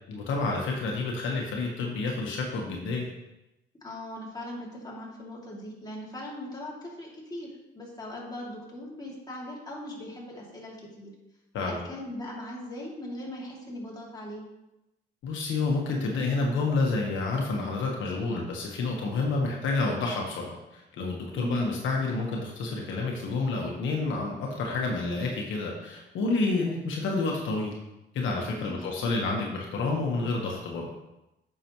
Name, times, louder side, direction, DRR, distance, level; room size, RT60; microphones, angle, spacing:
voice 1, 0.1-3.1 11.5-11.8 15.2-27.8 28.1-30.9, left 3 dB, 80° left, -1 dB, 1.4 m, -29 dB
voice 2, 3.8-11.1 11.7-14.4 21.3-21.7 28.5-28.8, left 1 dB, 20° left, -4 dB, 2.6 m, -39 dB
8.8 x 6.1 x 3.1 m, 0.94 s
cardioid pair, 90°, 20 cm